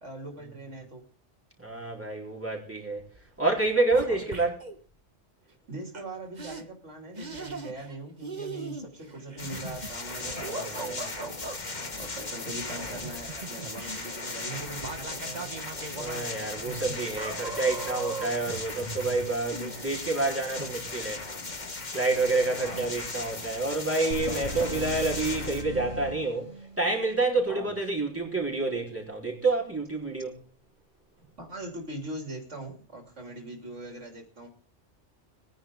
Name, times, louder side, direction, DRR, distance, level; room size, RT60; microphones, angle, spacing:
voice 1, 0.0-1.0 5.7-11.4 12.0-16.3 22.6-22.9 27.5-27.7 31.4-34.5, right 2 dB, 80° right, 3.3 m, -41 dB
voice 2, 1.6-3.1 3.4-4.6 10.3-11.0 15.9-21.2 21.9-26.5 26.8-30.4, right 3 dB, 10° right, 4.1 m, -28 dB
sound 1, 3.1-3.3 3.5-4.8 5.9-6.0 6.4-6.6 7.2-8.0 8.2-11.6 12.7-20.3 20.6-20.8, right 3 dB, 35° right, 1.6 m, -39 dB
sound 2, 9.4-25.6, left 3 dB, 40° left, 1.7 m, -38 dB
sound 3, 24.1-26.9, equal, 60° left, 3.1 m, -37 dB
21.5 x 10.0 x 3.8 m
omnidirectional pair, 1.2 m